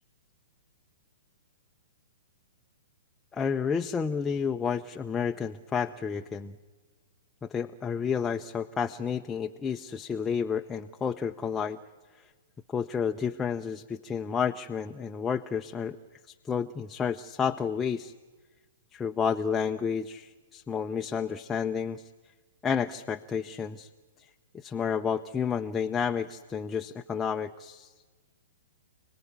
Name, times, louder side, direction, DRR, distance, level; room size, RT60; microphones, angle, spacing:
voice 1, 3.3-6.5 7.4-11.8 12.1-12.3 12.7-16.0 16.3-18.1 18.9-22.1 22.6-23.9 24.2-24.3 24.5-27.9, left 6 dB, 15° left, 5 dB, 0.7 m, -31 dB
28.5 x 19.0 x 9.8 m, 1.4 s
figure-of-eight pair, 115°, 0 cm